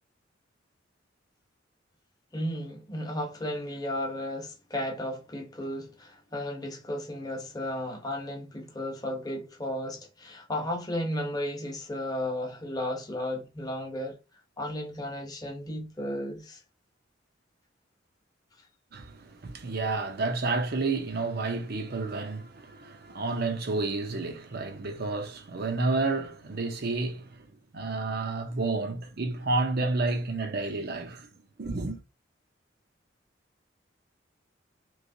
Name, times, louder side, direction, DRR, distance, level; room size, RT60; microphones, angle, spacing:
voice 1, 2.3-14.1 14.6-16.6, left 1 dB, 20° left, 0.9 m, -34 dB
voice 2, 18.9-31.3 31.6-32.0, right 3 dB, 55° right, 0.7 m, -30 dB
3.2 x 3.0 x 2.7 m
head